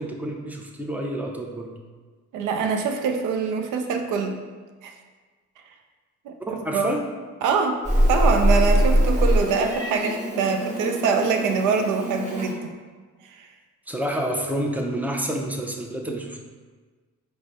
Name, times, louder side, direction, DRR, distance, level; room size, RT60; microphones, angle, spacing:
voice 1, 0.0-1.8 6.5-7.0 13.9-16.4, right 1 dB, 5° right, 0 dB, 0.6 m, -28 dB
voice 2, 2.3-4.4 4.8-4.9 6.3-6.9 7.4-7.8 8.1-12.7 13.3-13.5, right 5 dB, 90° right, 4 dB, 0.5 m, -24 dB
Meow, 7.8-12.5, equal, 25° right, 1.1 m, -22 dB
4.6 x 2.2 x 4.0 m, 1.4 s
cardioid pair, 90°, 30 cm